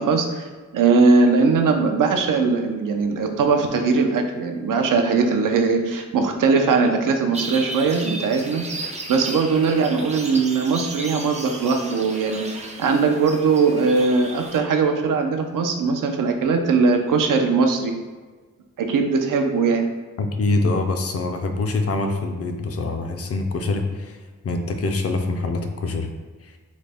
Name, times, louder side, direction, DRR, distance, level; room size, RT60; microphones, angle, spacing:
voice 1, 0.0-17.9 18.8-19.9, right 4 dB, 85° right, 4 dB, 0.5 m, -20 dB
sound 1, 7.3-14.6, right 2 dB, 20° right, 0.4 m, -34 dB
voice 2, 20.2-26.1 26.4-26.6, left 3 dB, 50° left, 5 dB, 0.4 m, -25 dB
3.9 x 2.0 x 3.3 m, 1.4 s
wide cardioid pair, 80°, 32 cm